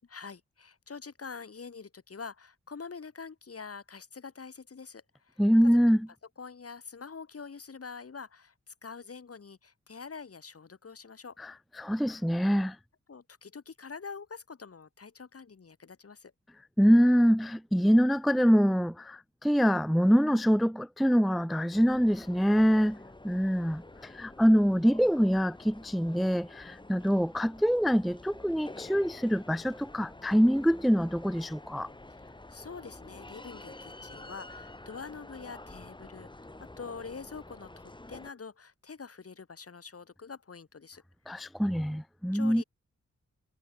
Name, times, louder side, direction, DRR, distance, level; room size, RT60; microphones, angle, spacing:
voice 1, 0.0-5.8 6.4-11.4 13.1-16.3 32.1-41.0 42.3-42.6, left 5 dB, 55° left, 6.5 m, -45 dB
voice 2, 5.4-6.1 11.4-12.8 16.8-31.9 41.3-42.6, equal, ahead, 0.5 m, -25 dB
sound 1, 21.7-38.3, left 2 dB, 15° left, 2.6 m, -48 dB
wide cardioid pair, 100°, 29 cm